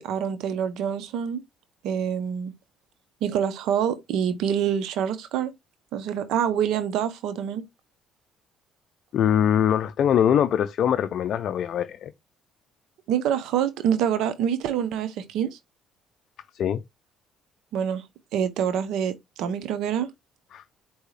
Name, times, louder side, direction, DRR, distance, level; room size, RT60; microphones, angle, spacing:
voice 1, 0.0-1.4 1.8-2.5 3.2-5.5 5.9-7.6 13.1-15.5 17.7-18.0 18.3-20.1, right 8 dB, 75° right, 0.6 m, -26 dB
voice 2, 9.1-12.1 16.5-16.8 20.5-20.6, left 9 dB, 60° left, 0.4 m, -22 dB
4.6 x 2.7 x 3.2 m
supercardioid pair, 80°, 0 cm